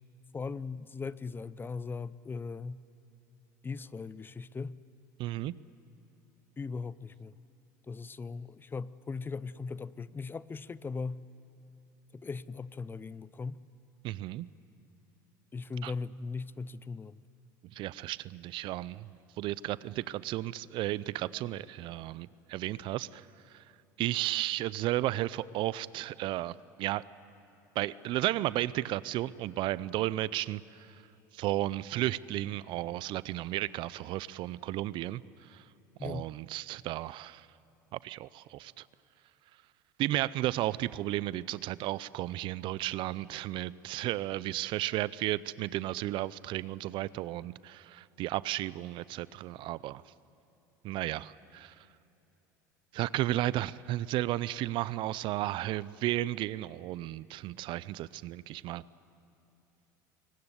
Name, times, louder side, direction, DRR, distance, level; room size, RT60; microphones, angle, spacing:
voice 1, 0.3-2.8 3.6-4.8 6.6-7.3 7.9-11.2 12.1-13.6 15.5-17.2 36.0-36.3, left 4 dB, 20° left, 19 dB, 0.6 m, -39 dB
voice 2, 5.2-5.6 14.0-14.5 15.8-15.9 17.7-19.1 19.4-23.2 23.5-23.6 24.0-27.0 27.8-30.6 31.3-35.2 35.5-35.6 36.0-37.5 37.9-38.8 40.0-50.0 50.8-51.7 52.9-58.8, right 15 dB, 55° right, 20 dB, 0.6 m, -33 dB
22.5 x 19.0 x 9.7 m, 2.9 s
hypercardioid pair, 85°, 10 cm